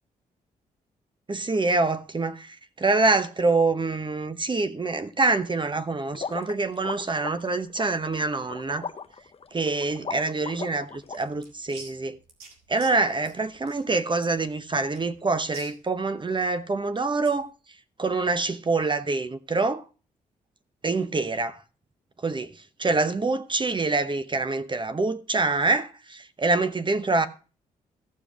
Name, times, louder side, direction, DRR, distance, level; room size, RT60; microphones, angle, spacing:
voice 1, 1.3-8.8 9.5-12.2 12.7-17.5 18.0-19.8 20.8-21.6 22.2-22.5 22.8-27.3, right 3 dB, 30° right, 0.9 m, -25 dB
sound 1, 6.1-11.2, left 6 dB, 40° left, 0.8 m, -37 dB
sound 2, 10.9-17.5, right 3 dB, 90° right, 2.0 m, -49 dB
14.0 x 5.0 x 6.1 m
supercardioid pair, 55°, 16 cm